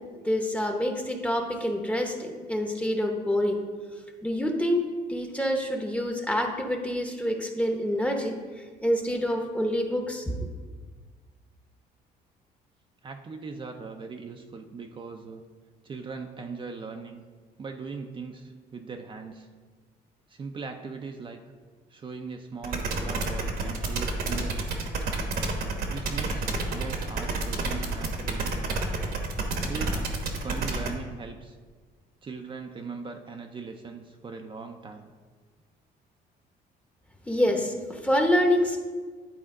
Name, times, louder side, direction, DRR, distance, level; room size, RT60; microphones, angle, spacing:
voice 1, 0.2-3.6 4.2-4.8 5.1-8.3 8.8-10.4 37.3-38.8, equal, 5° left, 3 dB, 0.8 m, -26 dB
voice 2, 13.0-15.4 15.8-17.2 17.6-19.5 20.3-21.4 21.9-24.8 25.9-28.5 29.6-31.6 32.2-35.1, right 4 dB, 30° right, 4 dB, 0.5 m, -39 dB
sound 1, 22.6-30.9, right 3 dB, 65° right, 1.1 m, -29 dB
11.0 x 4.3 x 3.7 m, 1.5 s
cardioid pair, 110°, 17 cm